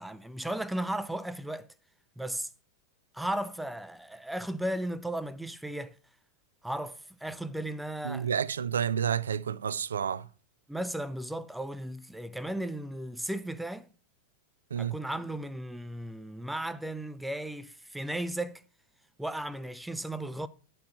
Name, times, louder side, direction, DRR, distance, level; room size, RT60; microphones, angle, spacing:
voice 1, 0.0-1.7 2.2-2.5 3.1-6.0 6.6-8.3 10.7-13.9 14.8-18.6 19.2-20.5, right 1 dB, 5° right, 0.5 m, -35 dB
voice 2, 8.0-10.3 14.7-15.0, right 8 dB, 70° right, 0.4 m, -30 dB
11.0 x 4.6 x 5.3 m
figure-of-eight pair, 90°, 0 cm